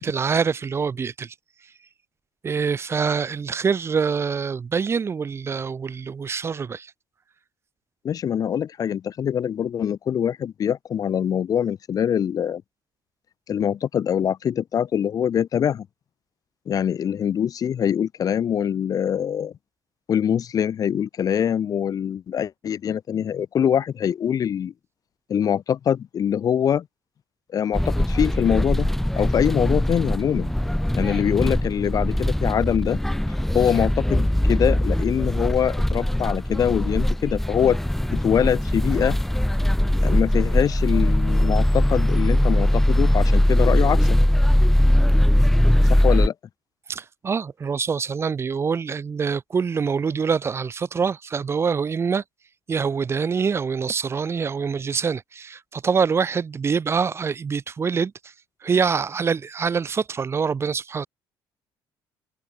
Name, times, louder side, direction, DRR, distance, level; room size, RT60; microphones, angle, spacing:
voice 1, 0.0-1.3 2.4-6.9 46.9-52.2 52.7-58.1 58.6-61.1, right 6 dB, 30° right, 1.6 m, -25 dB
voice 2, 8.0-12.6 13.5-15.9 16.7-19.5 20.1-24.7 25.3-26.8 27.5-28.9 29.2-30.5 30.9-33.0 33.5-37.8 38.1-39.2 40.0-44.2 45.9-46.3, left 8 dB, 45° left, 1.2 m, -23 dB
sound 1, 27.7-46.3, left 1 dB, 5° left, 0.6 m, -20 dB
cardioid pair, 135°, 9 cm